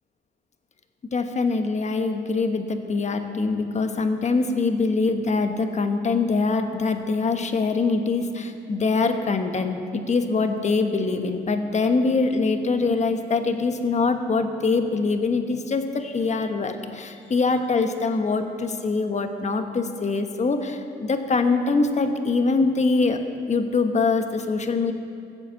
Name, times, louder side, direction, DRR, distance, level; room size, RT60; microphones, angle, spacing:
voice 1, 1.1-23.2 23.5-24.9, left 4 dB, 35° left, 7 dB, 1.1 m, -23 dB
15.5 x 8.1 x 7.2 m, 2.5 s
cardioid pair, 90°, 20 cm